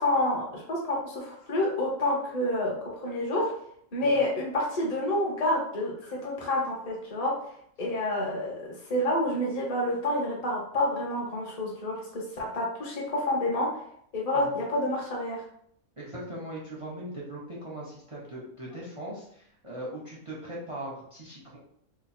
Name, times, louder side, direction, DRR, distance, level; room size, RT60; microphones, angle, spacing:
voice 1, 0.0-3.5 3.9-7.4 7.8-13.7 14.1-15.4, left 1 dB, 30° left, -2 dB, 0.8 m, -28 dB
voice 2, 16.0-21.6, right 1 dB, 35° right, -6 dB, 0.5 m, -40 dB
3.1 x 2.2 x 4.1 m, 0.68 s
omnidirectional pair, 1.6 m